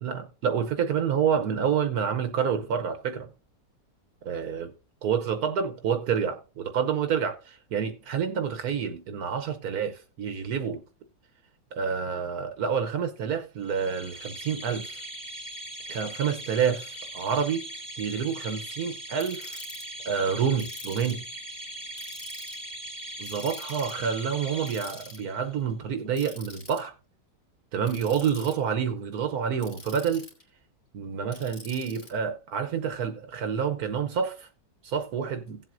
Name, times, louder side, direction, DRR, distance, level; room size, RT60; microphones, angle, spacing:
voice 1, 0.0-3.3 4.3-4.7 5.0-10.8 11.7-15.0 15.9-17.7 18.0-19.6 20.0-21.2 23.2-26.9 27.7-30.3 30.9-34.5 34.8-35.6, right 7 dB, 70° right, 1.3 m, -28 dB
sound 1, 13.7-25.5, right 1 dB, 10° left, 2.6 m, -40 dB
Ratchet pawl, 19.2-19.8 20.6-21.3 22.0-22.6 23.3-24.0 24.7-25.2 26.2-26.8 27.8-28.5 29.6-30.4 31.3-32.1, left 2 dB, 60° left, 3.1 m, -45 dB
17.0 x 7.6 x 2.5 m
omnidirectional pair, 1.7 m